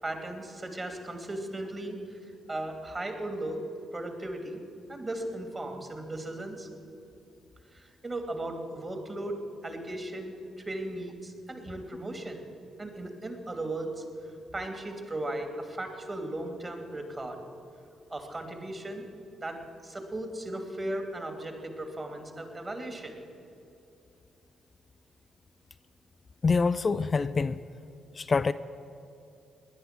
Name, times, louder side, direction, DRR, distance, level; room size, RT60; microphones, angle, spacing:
voice 1, 0.0-3.6 3.9-4.6 4.9-6.7 7.7-9.4 9.6-12.5 12.8-17.4 18.1-19.0 19.4-23.2, right 1 dB, 30° right, 5 dB, 2.7 m, -37 dB
voice 2, 26.4-27.6 28.1-28.5, left 4 dB, 40° left, 13 dB, 0.4 m, -25 dB
18.5 x 10.5 x 6.1 m, 2.7 s
hypercardioid pair, 40°, 0 cm